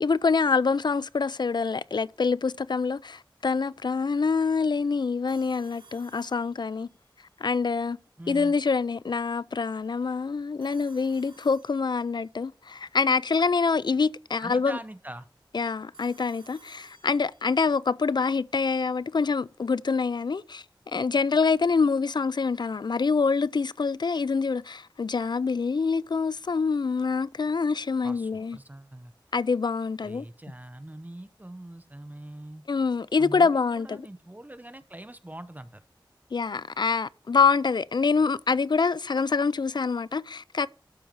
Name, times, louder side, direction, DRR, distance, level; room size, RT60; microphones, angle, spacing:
voice 1, 0.0-6.9 7.4-8.0 8.3-14.8 15.5-28.6 29.3-30.3 32.7-34.1 36.3-40.7, left 4 dB, 60° left, 0.4 m, -25 dB
Telephone, 5.3-7.1 10.6-12.3 15.9-17.6, right 4 dB, 85° right, 1.9 m, -56 dB
voice 2, 8.2-8.5 14.4-15.3 28.0-29.1 30.0-32.6 33.2-35.8, right 1 dB, 20° right, 0.8 m, -43 dB
12.5 x 4.5 x 5.2 m
wide cardioid pair, 65°, 8 cm